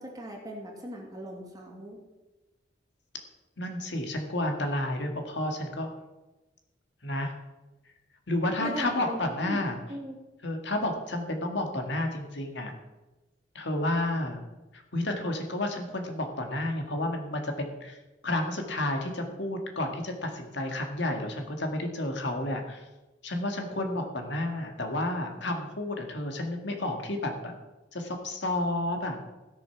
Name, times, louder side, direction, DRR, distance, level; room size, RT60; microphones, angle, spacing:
voice 1, 0.0-2.0 8.6-9.6 9.9-10.2, right 1 dB, 20° right, -1 dB, 2.6 m, -38 dB
voice 2, 3.6-5.9 7.0-7.3 8.3-9.8 10.4-12.7 13.6-14.4 14.7-18.0 18.2-22.8 23.2-27.5 27.9-29.2, left 1 dB, 70° left, 4 dB, 2.0 m, -31 dB
16.0 x 6.8 x 5.9 m, 1.1 s
head